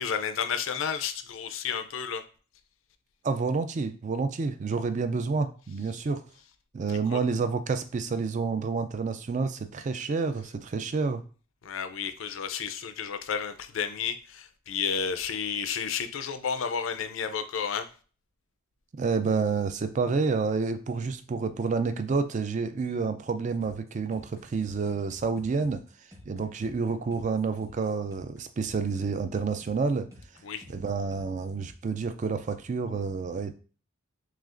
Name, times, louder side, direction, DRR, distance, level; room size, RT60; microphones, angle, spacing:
voice 1, 0.0-2.2 6.9-7.2 11.6-17.9 30.4-30.6, left 7 dB, 70° left, 9 dB, 0.5 m, -32 dB
voice 2, 3.2-6.2 6.7-11.2 18.9-25.8 26.3-30.1 30.7-33.5, right 4 dB, 35° right, 9 dB, 0.3 m, -29 dB
sound 1, 23.5-31.9, left 1 dB, 15° right, 0.8 m, -51 dB
6.1 x 2.4 x 2.5 m, 0.38 s
head